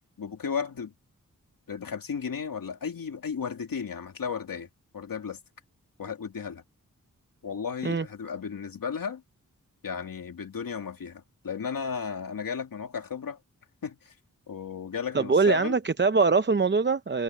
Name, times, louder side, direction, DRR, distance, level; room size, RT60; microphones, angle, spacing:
voice 1, 0.2-0.9 1.7-4.7 4.9-5.4 6.0-6.6 7.4-9.2 9.8-13.4 13.8-14.1 14.5-15.8, left 6 dB, 90° left, 2.6 m, -34 dB
voice 2, 15.1-17.2, right 4 dB, 35° right, 0.7 m, -23 dB
wide cardioid pair, 65°, 33 cm